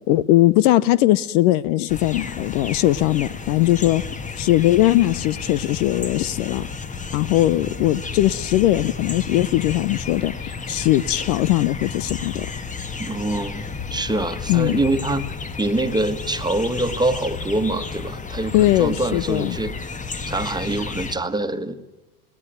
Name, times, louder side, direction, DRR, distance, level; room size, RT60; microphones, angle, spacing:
voice 1, 0.1-4.0 4.4-6.7 7.1-12.5 14.5-14.8 18.5-19.6, left 15 dB, 55° left, 18 dB, 0.8 m, -19 dB
sound 1, 1.9-21.2, left 4 dB, 15° left, 1.5 m, -32 dB
voice 2, 13.0-15.2 15.6-19.7 20.3-21.7, right 2 dB, 10° right, 8 dB, 1.7 m, -24 dB
22.5 x 17.0 x 9.2 m, 1.1 s
hypercardioid pair, 85°, 46 cm